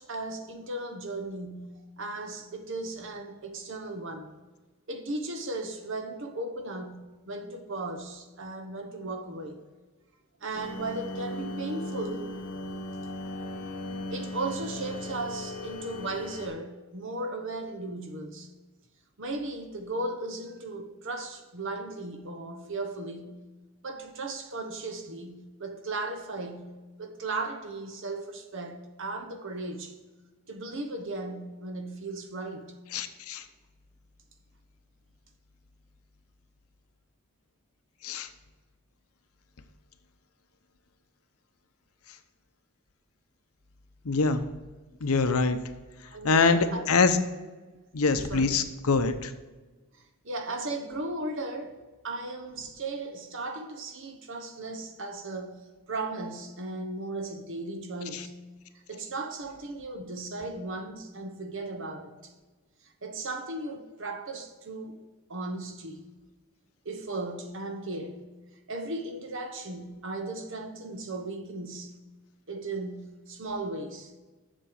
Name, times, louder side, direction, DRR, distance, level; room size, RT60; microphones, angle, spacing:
voice 1, 0.0-4.3 4.9-9.6 10.4-12.4 14.1-18.5 19.2-23.4 23.8-29.9 30.5-32.8 46.1-47.0 48.3-48.5 50.2-51.8 52.0-58.4 58.9-62.3 63.0-65.0 65.3-66.0 66.8-68.3 68.7-71.9 72.5-74.1, right 2 dB, 60° right, 1.1 m, -36 dB
sound 1, 10.5-16.5, left 1 dB, 60° left, 1.5 m, -37 dB
voice 2, 32.9-33.4 38.0-38.3 44.0-44.4 45.0-45.6 46.2-47.2 47.9-49.3 58.1-58.2, left 4 dB, 80° left, 0.7 m, -24 dB
7.6 x 6.8 x 4.9 m
head